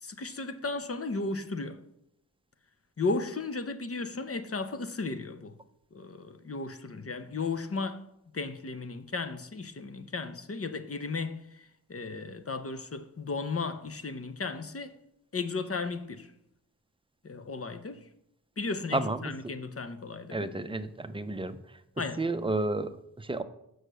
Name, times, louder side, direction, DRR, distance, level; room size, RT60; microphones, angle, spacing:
voice 1, 0.0-1.8 3.0-5.5 5.9-8.0 8.3-15.0 15.3-16.3 17.2-18.0 18.6-20.5 22.0-22.3, left 3 dB, 40° left, 0.7 m, -35 dB
voice 2, 18.9-19.3 20.3-21.6 22.2-23.4, right 2 dB, 15° right, 0.5 m, -31 dB
6.5 x 6.3 x 6.6 m
wide cardioid pair, 100°, 37 cm